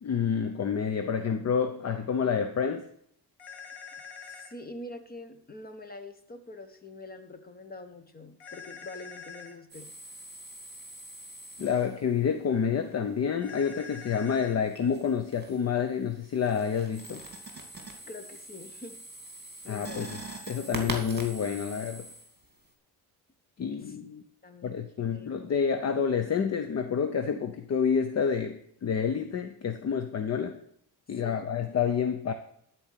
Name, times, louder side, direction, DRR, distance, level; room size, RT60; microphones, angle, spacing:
voice 1, 0.0-2.9 11.6-17.2 19.7-20.2 20.5-22.1 23.6-24.2 24.6-30.6 31.1-32.3, left 7 dB, 40° left, 8 dB, 0.8 m, -28 dB
sound 1, 3.4-4.5 8.4-9.6 13.4-14.6, left 6 dB, 80° left, 1.9 m, -45 dB
voice 2, 4.2-9.9 18.1-19.0 19.6-20.1 23.8-24.0 24.4-24.8 25.1-25.4 31.1-31.5, left 2 dB, 25° left, 7 dB, 1.3 m, -45 dB
sound 2, 9.7-12.2 14.6-15.7 16.0-22.7, right 2 dB, 25° right, 2.5 m, -43 dB
12.5 x 4.6 x 8.3 m, 0.69 s
cardioid pair, 140°, 39 cm